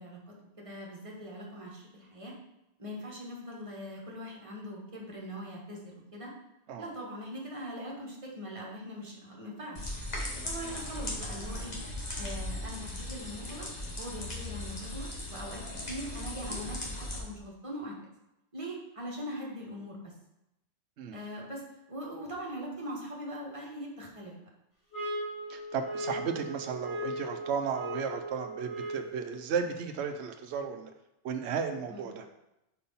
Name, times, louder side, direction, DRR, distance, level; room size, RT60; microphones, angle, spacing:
voice 1, 0.0-2.3 2.8-6.3 6.8-9.9 10.4-11.8 12.2-13.7 14.0-18.0 18.5-20.1 21.1-24.4 31.9-32.0, equal, 30° right, -2 dB, 1.3 m, -41 dB
sound 1, 9.7-17.2, left 1 dB, 40° left, 1.3 m, -38 dB
sound 2, 24.9-29.3, right 1 dB, 80° left, 2.2 m, -38 dB
voice 2, 25.5-30.9 31.2-32.3, right 6 dB, 70° right, 6 dB, 0.9 m, -34 dB
4.6 x 4.3 x 5.4 m, 0.89 s
omnidirectional pair, 1.2 m